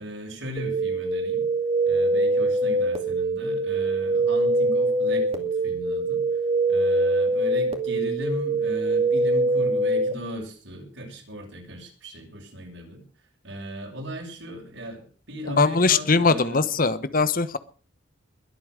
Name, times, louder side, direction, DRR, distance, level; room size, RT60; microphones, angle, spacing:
voice 1, 0.0-1.4 1.9-6.2 6.7-13.0 13.4-16.7, equal, 75° right, 1 dB, 7.6 m, -37 dB
sound 1, 0.6-10.1, right 2 dB, 30° right, 2.4 m, -23 dB
voice 2, 15.5-17.6, left 4 dB, 45° left, 14 dB, 1.2 m, -21 dB
22.0 x 8.7 x 6.6 m, 0.40 s
head